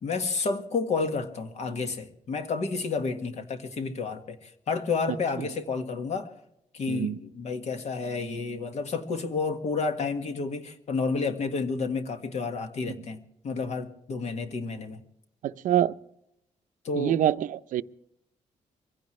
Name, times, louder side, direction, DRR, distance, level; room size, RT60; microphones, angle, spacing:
voice 1, 0.0-6.3 6.7-15.0 16.8-17.2, left 4 dB, 60° left, 6 dB, 1.7 m, -30 dB
voice 2, 6.9-7.2 13.0-13.1 15.4-15.9 16.9-17.8, right 11 dB, 85° right, 13 dB, 0.6 m, -26 dB
23.5 x 16.0 x 3.2 m, 0.78 s
cardioid pair, 140°, 13 cm